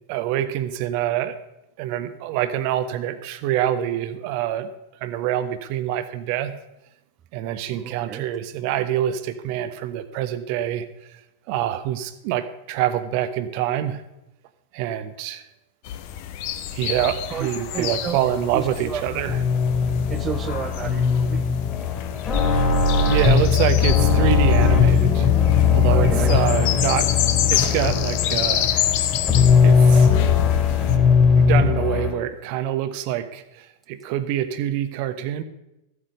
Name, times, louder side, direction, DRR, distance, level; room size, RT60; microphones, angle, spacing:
voice 1, 0.1-1.4 1.8-4.7 5.0-6.6 7.3-10.9 11.5-14.0 14.7-15.4 16.7-19.4 23.1-25.3 25.7-27.1 27.5-28.7 29.6-30.1 31.3-35.4, right 11 dB, 45° right, 12 dB, 0.9 m, -25 dB
voice 2, 7.7-8.2 17.3-17.5 17.7-18.2 18.5-19.2 20.1-21.4 25.9-26.3, right 9 dB, 25° right, 12 dB, 0.4 m, -31 dB
sound 1, 15.8-31.0, left 11 dB, 45° left, 1.0 m, -29 dB
sound 2, 18.2-32.1, left 6 dB, 20° left, 3.0 m, -19 dB
14.5 x 8.1 x 5.3 m, 0.91 s
figure-of-eight pair, 90°, 0 cm